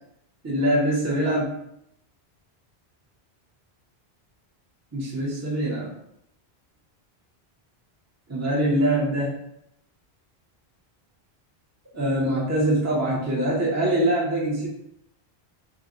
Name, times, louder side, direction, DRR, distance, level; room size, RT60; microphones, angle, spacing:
voice 1, 0.4-1.6 4.9-5.9 8.3-9.4 11.9-14.7, right 1 dB, 20° right, -4 dB, 0.6 m, -23 dB
4.5 x 2.0 x 3.0 m, 0.77 s
omnidirectional pair, 1.1 m